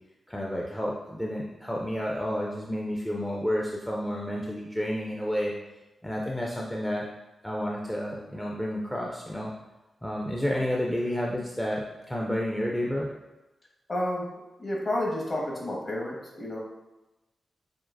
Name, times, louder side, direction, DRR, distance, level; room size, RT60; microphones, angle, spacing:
voice 1, 0.3-5.5 6.0-7.1 7.4-9.5 10.0-13.1, equal, 5° left, -3 dB, 0.5 m, -30 dB
voice 2, 13.9-14.3 14.6-16.6, left 1 dB, 35° left, -2 dB, 1.4 m, -30 dB
7.1 x 2.8 x 2.6 m, 1.0 s
wide cardioid pair, 110°, 0 cm